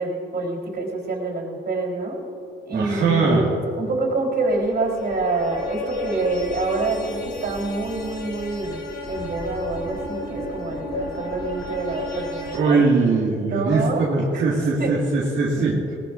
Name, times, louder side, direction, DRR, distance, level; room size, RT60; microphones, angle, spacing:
voice 1, 0.0-2.2 2.7-3.5 3.8-8.8 9.1-12.8 13.5-14.1 14.3-15.0 15.5-15.9, right 3 dB, 55° right, -2 dB, 4.3 m, -26 dB
voice 2, 2.7-3.5 12.5-15.9, right 3 dB, 70° right, -6 dB, 2.2 m, -21 dB
sound 1, 4.5-12.6, left 2 dB, 55° left, 3.2 m, -33 dB
21.0 x 19.0 x 2.7 m, 2.8 s
cardioid pair, 90°, 20 cm